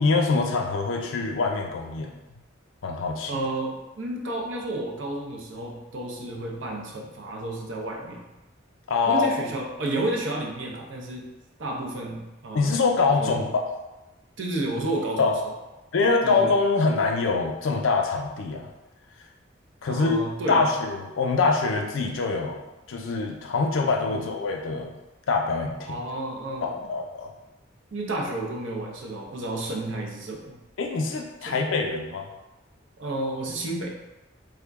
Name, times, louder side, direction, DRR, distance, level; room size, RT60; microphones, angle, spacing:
voice 1, 0.0-2.1 2.8-3.3 8.9-9.3 12.5-13.7 15.2-15.3 15.9-18.7 19.8-20.2 20.5-22.6 22.9-24.9 25.3-26.0 26.6-27.3 30.8-32.3, left 4 dB, 80° left, 2 dB, 0.5 m, -24 dB
voice 2, 3.3-8.3 9.1-11.3 11.6-12.8 13.2-13.4 14.4-15.5 16.2-16.5 19.9-20.7 24.1-24.3 25.9-26.9 27.9-30.6 31.4-31.6 33.0-33.9, right 2 dB, 70° right, 1 dB, 0.6 m, -31 dB
3.4 x 2.1 x 3.4 m, 1.0 s
head